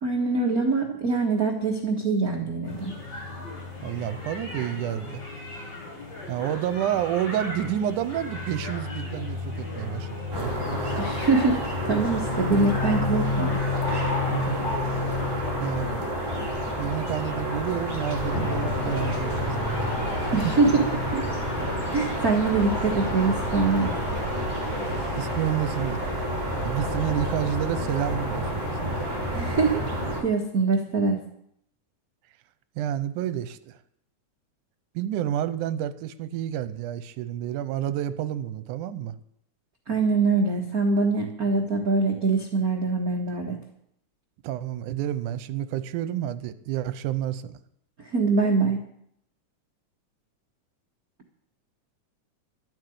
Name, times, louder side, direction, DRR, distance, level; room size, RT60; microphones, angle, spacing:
voice 1, 0.0-2.9 11.0-11.6 11.8-13.6 20.3-20.9 21.1-21.2 21.6-23.9 29.3-29.8 30.2-31.2 39.9-43.6 48.0-48.8, right 3 dB, 45° right, 1 dB, 1.2 m, -24 dB
sound 1, 2.6-21.1, left 4 dB, 60° left, 9.0 m, -33 dB
voice 2, 3.8-5.2 6.3-10.1 10.3-11.0 14.3-14.7 15.6-16.0 16.8-19.6 19.8-19.9 20.2-20.5 25.2-26.0 26.6-29.0 32.8-33.7 35.0-39.1 44.4-47.6, right 11 dB, 85° right, 13 dB, 2.2 m, -29 dB
sound 2, 10.3-30.2, equal, 10° right, 2.6 m, -31 dB
sound 3, 18.2-30.2, equal, 30° left, 4.8 m, -33 dB
12.5 x 7.8 x 9.3 m, 0.72 s
omnidirectional pair, 3.6 m